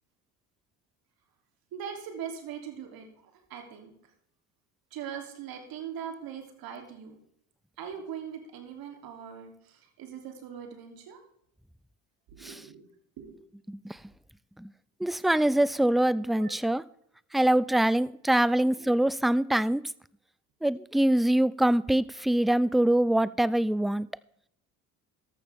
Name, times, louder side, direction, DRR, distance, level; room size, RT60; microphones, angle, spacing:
voice 1, 1.7-3.1 3.5-3.9 4.9-7.2 7.8-11.2 12.3-12.9 13.2-13.4 16.3-16.5 18.5-18.9, right 8 dB, 60° right, 4 dB, 3.4 m, -41 dB
voice 2, 13.7-14.0 14.6-14.7 15.0-16.8 17.3-19.8 20.6-24.1, right 1 dB, ahead, 19 dB, 0.4 m, -24 dB
14.0 x 11.5 x 3.6 m, 0.69 s
hypercardioid pair, 60°, 41 cm